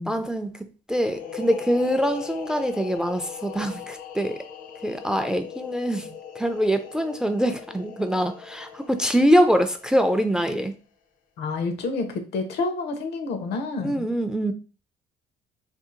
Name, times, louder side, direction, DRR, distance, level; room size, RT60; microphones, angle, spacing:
voice 1, 0.0-4.5 4.8-10.7 13.8-14.5, equal, 5° right, 8 dB, 0.3 m, -24 dB
sound 1, 1.0-10.5, left 8 dB, 50° left, 0.5 m, -39 dB
voice 2, 11.4-14.1, left 3 dB, 80° left, 7 dB, 0.8 m, -29 dB
2.7 x 2.4 x 3.7 m, 0.35 s
cardioid pair, 110°, 17 cm